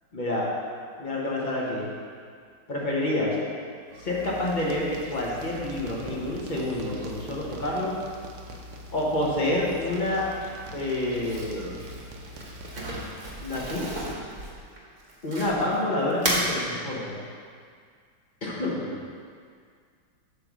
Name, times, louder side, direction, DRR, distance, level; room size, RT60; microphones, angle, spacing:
voice 1, 0.1-0.5 1.0-1.9 2.7-3.4 4.0-8.0 8.9-10.2 10.7-11.9 13.4-13.9 15.2-17.2 18.4-18.9, left 1 dB, 35° left, -4 dB, 0.7 m, -28 dB
sound 1, 3.9-13.3, equal, 65° right, 1.1 m, -42 dB
Crumpling crinkling, 11.2-15.8 16.1-16.5, right 1 dB, 45° right, 1.2 m, -32 dB
8.0 x 3.4 x 6.1 m, 2.1 s
omnidirectional pair, 2.3 m